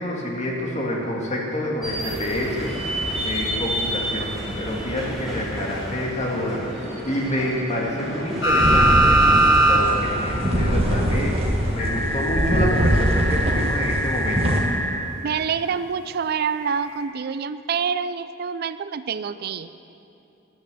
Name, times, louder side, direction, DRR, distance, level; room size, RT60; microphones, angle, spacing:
voice 1, 0.0-2.7 3.2-14.6, left 1 dB, 35° left, -2 dB, 1.9 m, -28 dB
sound 1, 1.8-13.4, equal, ahead, 2.9 m, -32 dB
sound 2, 8.3-14.6, equal, 30° right, 1.4 m, -23 dB
sound 3, 8.4-9.8 10.1-10.2 11.8-14.9 16.6-16.7, right 1 dB, 70° left, 1.7 m, -21 dB
voice 2, 15.2-19.7, right 6 dB, 50° right, 13 dB, 0.4 m, -27 dB
10.0 x 9.1 x 6.8 m, 2.8 s
head